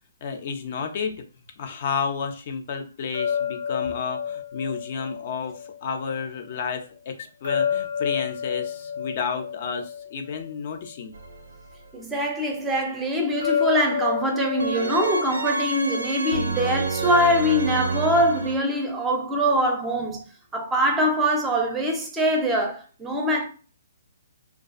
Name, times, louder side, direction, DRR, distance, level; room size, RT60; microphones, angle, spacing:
voice 1, 0.2-1.2 1.6-11.1, left 6 dB, 45° left, 0.4 m, -31 dB
sound 1, 3.1-6.2 7.4-11.0 13.4-16.5, left 8 dB, 85° left, 0.6 m, -30 dB
sound 2, 11.1-11.9 14.6-18.6, right 3 dB, 75° right, 0.4 m, -29 dB
voice 2, 11.9-20.2 20.5-23.5, equal, 10° right, 0.5 m, -23 dB
2.4 x 2.3 x 2.4 m
hypercardioid pair, 155°, 0 cm